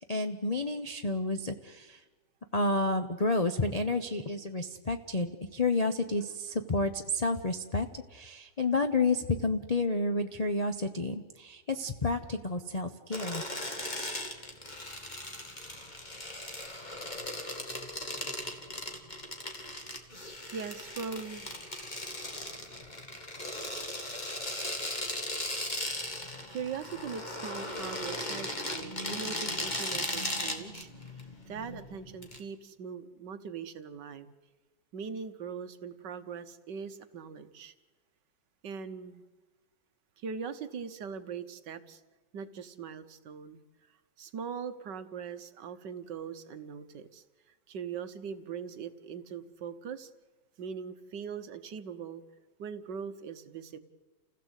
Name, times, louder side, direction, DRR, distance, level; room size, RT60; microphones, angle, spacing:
voice 1, 0.1-2.0 2.5-13.4, left 2 dB, 40° left, 5 dB, 0.5 m, -30 dB
sound 1, 13.1-32.4, left 1 dB, 20° left, 2.2 m, -38 dB
voice 2, 20.5-21.7 22.5-22.6 26.5-30.9 31.5-34.3 34.9-37.7 38.6-39.2 40.2-42.0 42.3-43.6 44.2-47.2 47.7-50.1 50.6-52.2 52.6-53.8, right 6 dB, 65° right, 10 dB, 1.7 m, -41 dB
29.0 x 16.0 x 8.2 m, 1.3 s
omnidirectional pair, 2.1 m